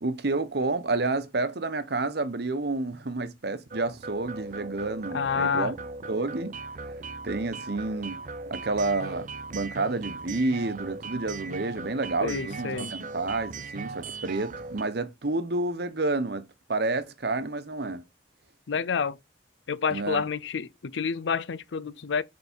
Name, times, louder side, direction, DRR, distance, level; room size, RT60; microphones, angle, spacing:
voice 1, 0.0-5.7 6.1-6.6 7.2-8.2 8.5-18.0 19.9-20.2, right 3 dB, 65° right, 1.0 m, -29 dB
sound 1, 3.7-14.8, right 3 dB, 45° right, 0.6 m, -39 dB
voice 2, 5.1-5.7 12.2-12.9 18.7-19.2 19.7-22.2, left 6 dB, 90° left, 0.5 m, -29 dB
7.0 x 4.7 x 4.4 m
head